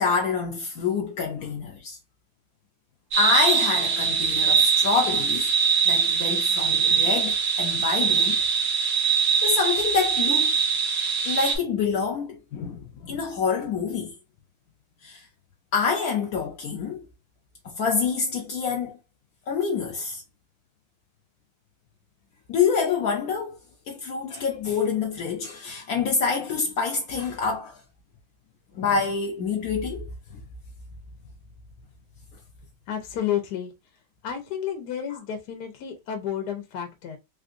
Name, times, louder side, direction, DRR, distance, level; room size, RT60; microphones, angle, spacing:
voice 1, 0.0-2.0 3.1-5.5 5.9-8.4 9.4-10.5 11.2-14.1 15.0-15.3 15.7-17.0 17.6-19.0 19.5-20.2 22.5-23.6 23.9-27.8 28.7-30.4, left 5 dB, 90° left, 0.8 m, -27 dB
sound 1, 3.1-11.6, right 6 dB, 60° right, 1.0 m, -22 dB
voice 2, 32.9-33.7 34.2-37.2, left 9 dB, 60° left, 1.2 m, -31 dB
3.6 x 2.5 x 2.4 m
omnidirectional pair, 2.2 m